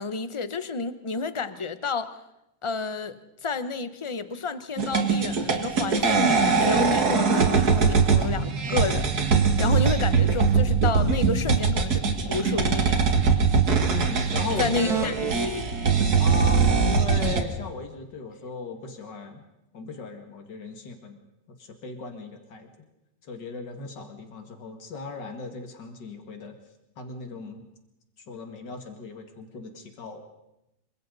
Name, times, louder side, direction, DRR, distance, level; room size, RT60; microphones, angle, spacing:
voice 1, 0.0-2.1 2.6-3.2 3.4-9.1 9.6-13.0 14.6-15.7, left 4 dB, 40° left, 12 dB, 0.4 m, -30 dB
sound 1, 4.8-17.4, right 5 dB, 65° right, 2.3 m, -22 dB
voice 2, 13.9-15.2 16.2-19.4 19.7-21.2 21.6-22.7 23.2-26.6 27.0-27.7 28.3-30.2, left 4 dB, 85° left, 4 dB, 2.7 m, -37 dB
27.0 x 25.0 x 4.0 m, 0.88 s
omnidirectional pair, 1.8 m